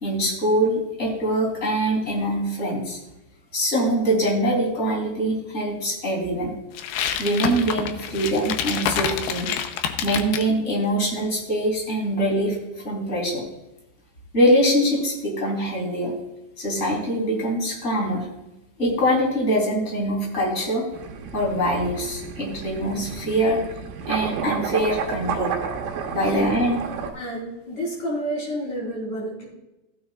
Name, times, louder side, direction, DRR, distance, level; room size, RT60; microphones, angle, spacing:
voice 1, 0.0-3.0 3.5-6.6 7.2-9.5 10.0-12.6 12.8-13.4 14.3-16.1 16.6-18.3 18.8-20.9 21.3-23.6 24.1-25.5 26.1-26.8, equal, 20° left, -2 dB, 3.4 m, -23 dB
sound 1, 6.8-10.5, left 8 dB, 85° left, 2.7 m, -27 dB
sound 2, 20.9-27.1, right 7 dB, 70° right, 2.7 m, -31 dB
voice 2, 26.2-26.5 27.1-29.5, right 1 dB, 50° left, -2 dB, 5.4 m, -30 dB
15.0 x 9.6 x 2.4 m, 0.94 s
omnidirectional pair, 4.5 m